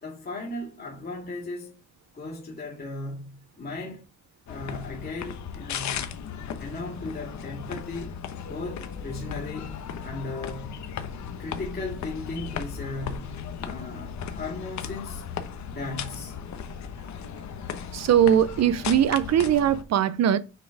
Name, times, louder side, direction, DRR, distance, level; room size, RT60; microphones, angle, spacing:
voice 1, 0.0-1.8 2.1-4.0 4.5-6.2 6.6-8.2 8.4-10.8 11.4-15.2 15.7-16.4, left 2 dB, 30° left, 2.2 m, -37 dB
sound 1, 4.5-19.8, left 7 dB, 70° left, 1.0 m, -36 dB
voice 2, 17.9-20.4, right 10 dB, 60° right, 0.7 m, -21 dB
6.4 x 4.2 x 4.7 m
cardioid pair, 90°, 30 cm